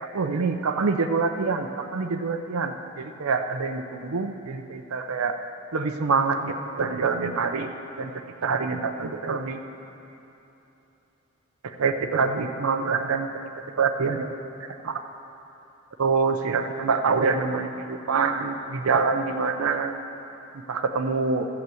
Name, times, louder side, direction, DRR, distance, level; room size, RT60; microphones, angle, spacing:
voice 1, 0.0-5.4 5.7-7.7 8.0-8.1 8.4-9.6 11.6-13.3 13.8-14.3 14.8-15.0 16.0-20.0 20.7-21.5, right 4 dB, 75° right, 5 dB, 0.6 m, -25 dB
13.5 x 5.8 x 7.7 m, 3.0 s
head